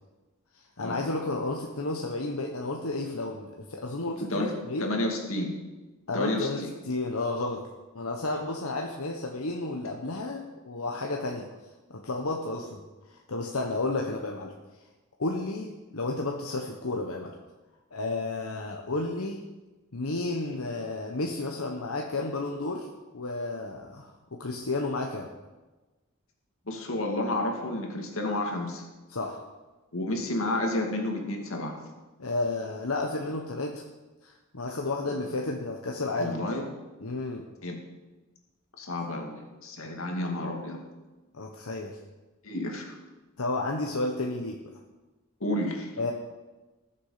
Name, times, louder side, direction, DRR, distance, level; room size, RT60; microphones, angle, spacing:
voice 1, 0.5-4.9 6.1-7.6 7.9-11.5 11.9-12.8 13.1-14.5 15.2-17.3 17.9-19.4 19.9-22.9 23.1-25.3 29.1-29.4 32.2-33.8 34.2-36.4 37.0-37.4 39.8-39.9 41.3-42.0 43.4-44.6 46.0-46.1, left 2 dB, 90° left, 1 dB, 1.2 m, -32 dB
voice 2, 4.2-4.5 4.8-5.5 6.1-6.7 26.7-28.8 29.9-31.7 36.2-36.7 37.6-37.7 38.8-39.3 39.6-40.8 42.4-43.0 45.4-45.9, left 1 dB, 70° left, 2 dB, 2.4 m, -30 dB
19.5 x 7.4 x 5.0 m, 1.2 s
head